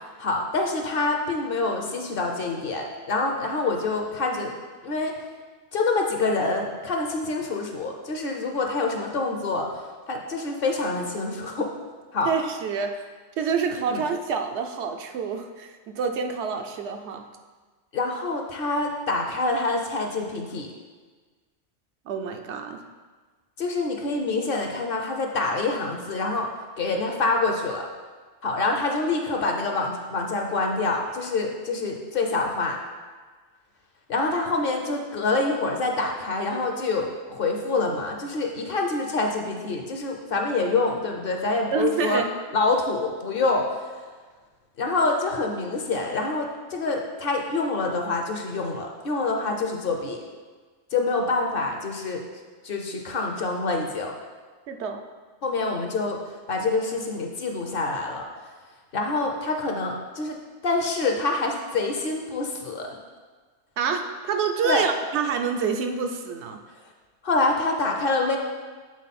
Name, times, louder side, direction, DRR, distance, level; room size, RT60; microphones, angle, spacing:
voice 1, 0.2-4.5 4.8-5.1 5.7-9.7 10.1-11.7 12.1-12.3 13.8-14.0 17.9-20.7 23.6-26.5 26.8-27.9 28.4-32.8 34.1-42.2 42.5-43.9 44.8-50.2 50.9-52.2 52.6-54.1 55.4-56.2 56.5-58.3 58.9-60.4 60.6-62.9 64.6-64.9 67.2-68.4, left 3 dB, 55° left, 2 dB, 0.8 m, -26 dB
voice 2, 12.2-13.0 13.4-17.3 22.1-22.8 41.7-42.3 54.7-55.0 63.8-66.6, right 6 dB, 75° right, 5 dB, 0.8 m, -27 dB
7.5 x 3.8 x 4.1 m, 1.4 s
omnidirectional pair, 1.2 m